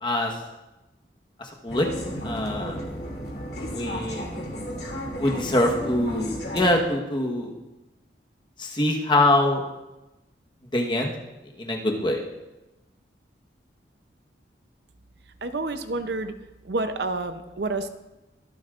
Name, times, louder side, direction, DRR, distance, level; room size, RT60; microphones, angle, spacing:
voice 1, 0.0-0.3 1.4-1.9 2.2-2.8 3.7-4.3 5.2-7.5 8.6-9.6 10.7-11.1 11.6-12.2, left 1 dB, 25° left, 1 dB, 1.2 m, -24 dB
sound 1, 1.7-6.8, equal, 60° left, 2.7 m, -33 dB
voice 2, 15.4-16.3 16.6-17.9, right 2 dB, 70° right, 9 dB, 0.7 m, -29 dB
23.0 x 8.0 x 2.5 m, 1.0 s
head